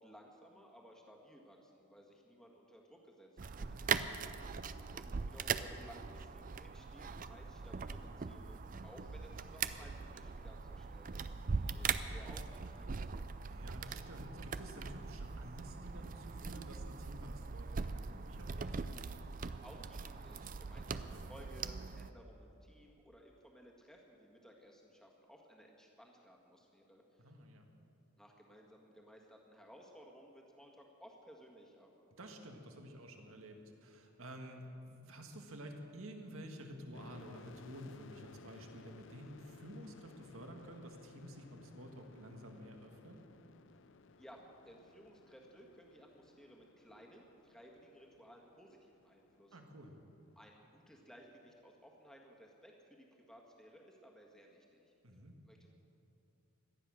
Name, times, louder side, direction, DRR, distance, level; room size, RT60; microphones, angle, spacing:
voice 1, 0.0-4.0 4.4-4.5 4.9-13.1 19.3-27.2 28.2-31.9 44.2-49.7 50.4-54.9 55.4-55.7, equal, 5° left, 0 dB, 1.7 m, -58 dB
sound 1, 3.4-22.1, right 5 dB, 40° right, 0.4 m, -41 dB
voice 2, 3.4-4.3 13.4-18.7 21.1-21.3 27.2-27.6 32.2-43.2 49.5-50.0 55.0-55.4, equal, 70° right, 3 dB, 1.8 m, -51 dB
sound 2, 36.9-50.4, left 4 dB, 55° left, 0.5 m, -60 dB
18.0 x 12.5 x 6.4 m, 2.8 s
head